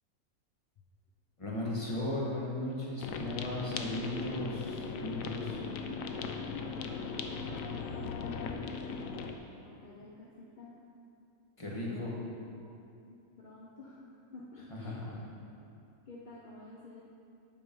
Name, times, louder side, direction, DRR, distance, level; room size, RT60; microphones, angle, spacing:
voice 1, 1.4-5.6 11.6-12.1 14.7-15.2, left 1 dB, 25° left, -5 dB, 1.4 m, -36 dB
sound 1, 3.0-9.4, left 5 dB, 75° left, 1.0 m, -38 dB
voice 2, 5.8-9.1 9.6-10.8 11.8-12.3 12.6-15.1 16.1-17.0, left 2 dB, 45° left, -4 dB, 0.7 m, -50 dB
8.0 x 5.3 x 5.3 m, 2.5 s
omnidirectional pair, 1.5 m